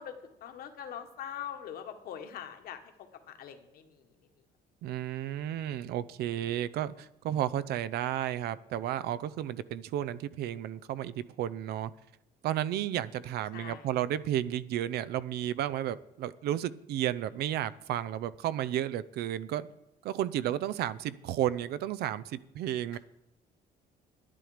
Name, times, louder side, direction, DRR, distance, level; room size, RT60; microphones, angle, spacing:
voice 1, 0.0-2.8 3.3-4.0 13.5-13.9 22.9-23.0, left 9 dB, 65° left, 6 dB, 1.6 m, -42 dB
voice 2, 4.8-11.9 12.4-19.7 20.0-23.0, right 12 dB, 75° right, 16 dB, 0.6 m, -32 dB
11.0 x 11.0 x 5.0 m, 0.87 s
cardioid pair, 150°, 17 cm